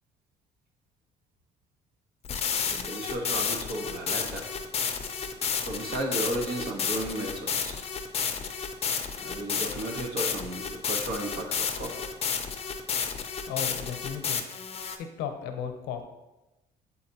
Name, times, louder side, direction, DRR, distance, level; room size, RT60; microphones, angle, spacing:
sound 1, 2.2-15.0, left 6 dB, 35° left, 0.6 m, -31 dB
voice 1, 2.7-4.6 5.2-5.3 5.6-7.8 9.2-12.1, right 1 dB, 60° right, 1 dB, 1.4 m, -34 dB
voice 2, 13.5-14.4 15.0-16.0, left 8 dB, 90° left, 5 dB, 0.8 m, -35 dB
8.4 x 4.1 x 2.9 m, 1.0 s
cardioid pair, 110°, 17 cm